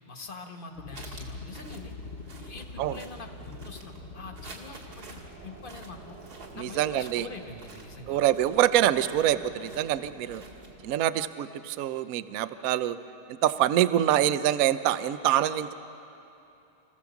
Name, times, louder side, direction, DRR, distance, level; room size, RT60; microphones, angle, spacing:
voice 1, 0.1-1.9 2.4-6.2 6.5-8.2, left 3 dB, 30° left, 4 dB, 1.2 m, -44 dB
sound 1, 0.8-7.5, left 3 dB, 50° left, 0.7 m, -45 dB
sound 2, 0.9-10.9, right 3 dB, 50° right, 2.4 m, -48 dB
voice 2, 6.6-7.3 8.1-10.4 10.8-13.0 13.3-15.7, right 12 dB, 70° right, 13 dB, 0.8 m, -25 dB
26.5 x 15.5 x 7.1 m, 2.8 s
omnidirectional pair, 2.2 m